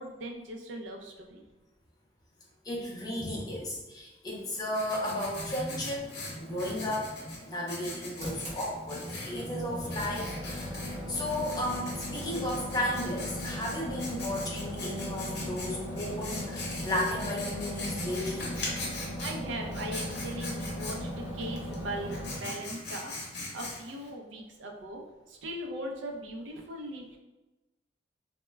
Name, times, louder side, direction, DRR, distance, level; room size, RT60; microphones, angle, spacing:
voice 1, 0.0-1.5 19.0-23.1 23.5-25.0 25.3-27.2, right 1 dB, 75° right, 2 dB, 0.4 m, -39 dB
voice 2, 2.6-10.8 11.1-18.5, left 1 dB, 20° left, -2 dB, 0.5 m, -34 dB
Writing, 4.3-24.1, left 2 dB, 60° left, 0.7 m, -42 dB
sound 1, 8.2-22.4, equal, 35° right, 0.8 m, -38 dB
2.1 x 2.1 x 3.2 m, 1.1 s
head